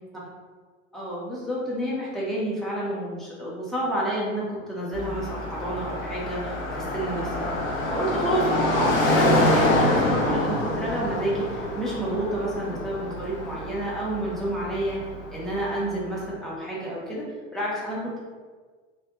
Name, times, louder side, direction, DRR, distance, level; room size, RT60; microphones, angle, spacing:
voice 1, 0.9-17.2 17.5-18.2, right 1 dB, ahead, -7 dB, 1.0 m, -29 dB
Car passing by, 4.9-16.0, left 1 dB, 90° left, 1.0 m, -27 dB
3.5 x 2.3 x 3.5 m, 1.5 s
hypercardioid pair, 95°, 39 cm